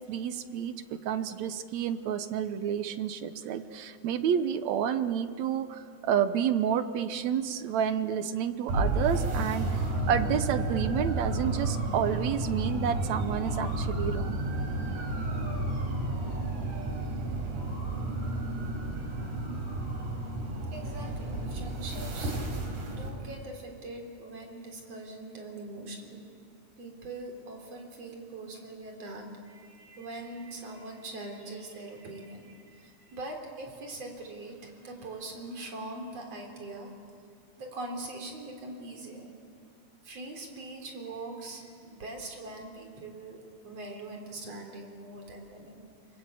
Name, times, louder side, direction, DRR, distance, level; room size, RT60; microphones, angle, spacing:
voice 1, 0.1-9.8 10.1-14.4, right 8 dB, 70° right, 11 dB, 2.0 m, -30 dB
sound 1, 8.7-23.1, right 2 dB, 85° right, 5.6 m, -31 dB
voice 2, 20.7-22.3 22.8-26.2 26.8-36.9 37.6-39.3 40.0-45.9, right 2 dB, 55° right, 2 dB, 4.6 m, -42 dB
30.0 x 22.5 x 8.4 m, 2.2 s
omnidirectional pair, 3.5 m